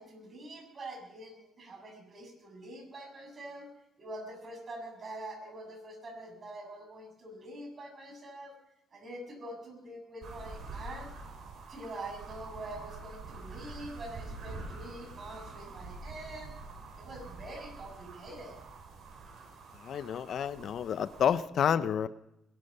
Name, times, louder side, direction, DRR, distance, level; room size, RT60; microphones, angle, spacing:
voice 1, 0.0-3.7 4.0-8.6 8.9-11.1 11.7-16.5 16.9-18.6, right 1 dB, 45° right, 3 dB, 6.7 m, -45 dB
sound 1, 10.2-21.3, right 3 dB, 65° right, 5.6 m, -46 dB
voice 2, 19.8-22.1, left 8 dB, 65° left, 14 dB, 0.7 m, -29 dB
21.0 x 12.5 x 5.4 m, 0.85 s
cardioid pair, 90°, 0 cm